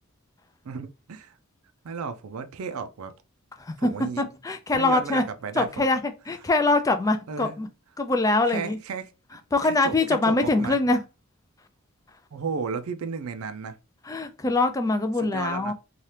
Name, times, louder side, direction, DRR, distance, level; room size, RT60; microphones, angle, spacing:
voice 1, 0.6-1.4 1.8-3.2 3.8-4.2 4.7-5.9 7.3-7.6 8.5-9.1 9.6-10.8 12.3-13.8 15.2-15.7, right 5 dB, 80° right, 0.4 m, -34 dB
voice 2, 4.2-5.2 5.6-7.7 8.0-8.8 9.5-11.0 14.1-15.7, left 2 dB, 15° left, 0.3 m, -23 dB
2.8 x 2.4 x 3.2 m
head